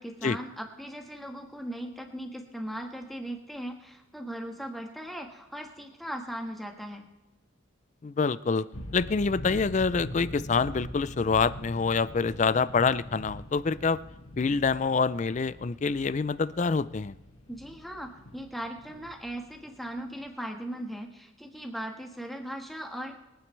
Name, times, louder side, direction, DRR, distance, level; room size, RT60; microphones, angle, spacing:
voice 1, 0.0-7.0 17.5-23.2, right 1 dB, ahead, 2 dB, 1.4 m, -38 dB
voice 2, 8.0-8.7 8.9-14.0 14.4-17.1, left 4 dB, 35° left, 17 dB, 0.4 m, -26 dB
sound 1, 8.7-20.2, equal, 80° left, 1.9 m, -43 dB
25.5 x 9.2 x 3.3 m, 1.0 s
head